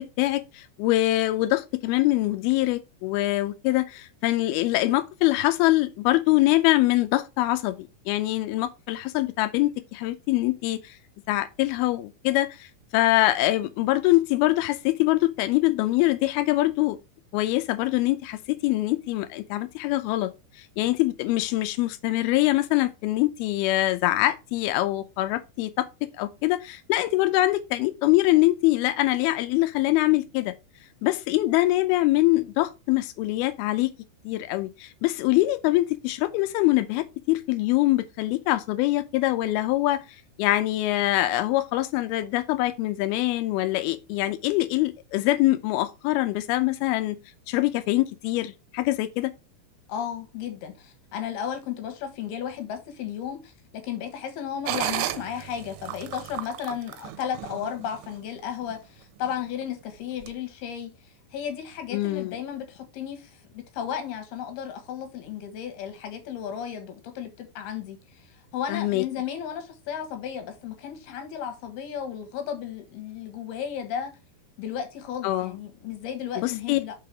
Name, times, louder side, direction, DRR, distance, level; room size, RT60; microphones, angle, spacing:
voice 1, 0.0-11.0 11.3-12.7 12.9-17.0 17.3-20.3 20.6-25.9 26.2-30.5 31.0-33.9 34.3-40.0 40.4-47.2 47.5-49.3 61.9-62.4 68.7-69.1 75.2-75.5 76.4-76.8, left 17 dB, 85° left, 2.2 m, -24 dB
voice 2, 49.9-60.9 61.3-68.0 68.5-74.1 74.6-76.9, left 8 dB, 70° left, 3.1 m, -34 dB
sound 1, 54.7-58.1 58.6-58.7 59.2-59.6 60.2-60.3, right 13 dB, 80° right, 2.5 m, -33 dB
5.9 x 4.8 x 4.8 m
omnidirectional pair, 5.1 m